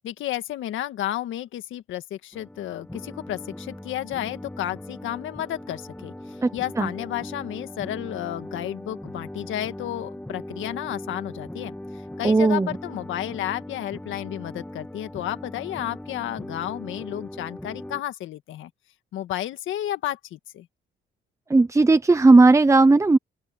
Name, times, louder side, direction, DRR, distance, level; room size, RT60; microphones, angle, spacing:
voice 1, 0.0-18.7 19.1-20.7, left 12 dB, 80° left, 1.7 m, -32 dB
sound 1, 2.3-18.0, left 1 dB, 5° left, 2.5 m, -39 dB
voice 2, 12.2-12.7 21.5-23.2, right 3 dB, 15° right, 0.7 m, -16 dB
open air
cardioid pair, 90°, 20 cm